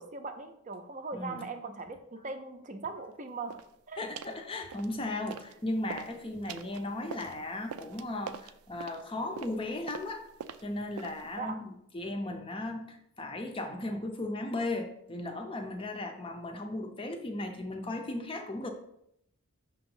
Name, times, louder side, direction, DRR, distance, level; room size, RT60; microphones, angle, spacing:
voice 1, 0.0-3.6 3.9-4.0 11.4-11.6, right 4 dB, 35° right, 7 dB, 0.5 m, -40 dB
voice 2, 1.1-1.4 4.0-10.3 10.6-11.6 11.9-18.7, left 2 dB, 25° left, 5 dB, 0.6 m, -36 dB
sound 1, 3.5-3.7 4.2-4.4 4.7-5.6 5.8-11.4, right 7 dB, 90° right, 0.4 m, -44 dB
6.0 x 2.9 x 5.4 m, 0.75 s
head